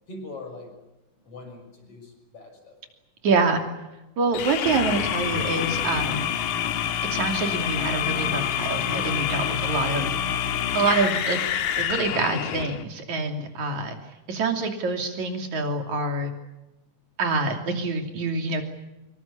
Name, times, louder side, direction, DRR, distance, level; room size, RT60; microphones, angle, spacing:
voice 1, 0.1-0.8 1.2-2.8, left 2 dB, 50° left, 4 dB, 7.6 m, -42 dB
voice 2, 3.2-3.6 4.2-6.2 7.1-11.4 11.8-14.0 14.3-16.3 17.2-18.6, right 3 dB, 70° right, 4 dB, 4.3 m, -26 dB
sound 1, 4.3-12.8, left 9 dB, 85° left, 2.8 m, -27 dB
25.5 x 22.5 x 8.5 m, 1.0 s
omnidirectional pair, 3.5 m